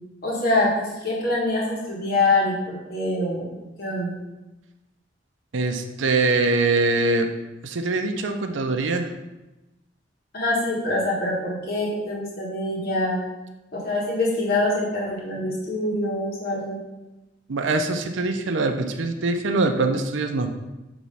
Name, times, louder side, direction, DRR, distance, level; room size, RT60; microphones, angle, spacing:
voice 1, 0.2-3.4 3.8-4.1 10.3-13.2 13.7-16.8, left 2 dB, 55° left, -5 dB, 1.7 m, -24 dB
voice 2, 5.5-7.3 7.6-9.1 17.5-20.5, right 3 dB, 90° right, 5 dB, 0.6 m, -23 dB
7.1 x 3.1 x 5.5 m, 1.0 s
head